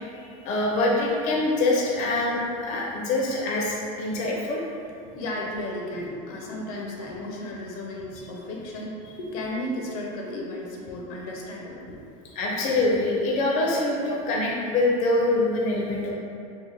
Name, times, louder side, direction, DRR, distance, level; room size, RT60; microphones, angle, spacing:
voice 1, 0.4-4.6 12.4-16.1, left 2 dB, 40° left, -3 dB, 0.5 m, -24 dB
voice 2, 4.8-12.0, left 1 dB, 80° left, -2 dB, 0.7 m, -34 dB
3.6 x 2.1 x 3.2 m, 2.5 s
supercardioid pair, 150°, 19 cm